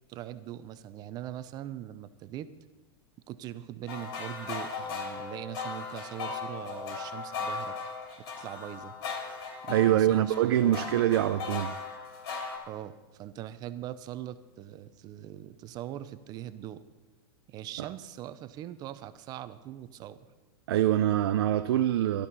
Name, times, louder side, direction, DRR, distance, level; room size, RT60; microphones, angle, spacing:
voice 1, 0.1-2.5 3.3-7.8 8.4-8.9 9.6-10.8 12.6-16.8 17.5-20.2, right 12 dB, 30° right, 13 dB, 0.7 m, -41 dB
sound 1, 3.9-12.6, left 5 dB, 70° left, 3.4 m, -37 dB
voice 2, 9.7-11.7 17.8-17.9 20.7-22.3, right 12 dB, 75° right, 9 dB, 0.6 m, -24 dB
13.0 x 12.0 x 5.4 m, 1.2 s
supercardioid pair, 145°, 13 cm